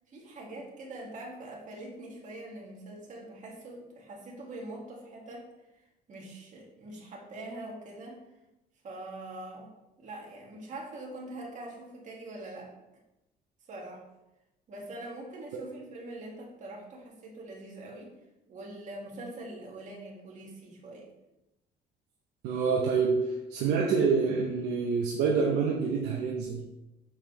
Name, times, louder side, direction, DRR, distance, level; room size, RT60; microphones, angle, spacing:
voice 1, 0.1-5.5 6.1-8.2 8.8-9.7 10.0-12.7 13.7-14.0 14.7-18.1 18.5-21.1, right 2 dB, 45° right, -2 dB, 2.3 m, -43 dB
voice 2, 22.4-26.6, right 5 dB, 85° right, -2 dB, 0.9 m, -27 dB
7.1 x 5.6 x 3.4 m, 0.95 s
cardioid pair, 110°, 17 cm